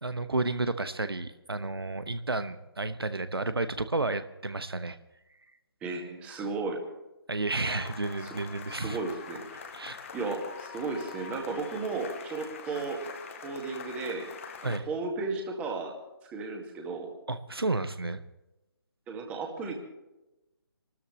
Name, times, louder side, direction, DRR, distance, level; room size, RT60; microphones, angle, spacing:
voice 1, 0.0-5.0 7.3-9.0 9.7-10.0 14.6-14.9 17.3-18.2, right 2 dB, 70° right, 11 dB, 1.0 m, -31 dB
voice 2, 5.8-6.8 8.2-8.4 8.7-9.5 10.1-13.0 13.4-14.3 14.6-16.0 16.3-17.1 19.1-19.7, right 3 dB, 10° right, 2 dB, 1.9 m, -34 dB
sound 1, 7.6-14.8, left 6 dB, 35° left, 1.4 m, -44 dB
26.5 x 13.5 x 3.2 m, 0.98 s
figure-of-eight pair, 145°, 13 cm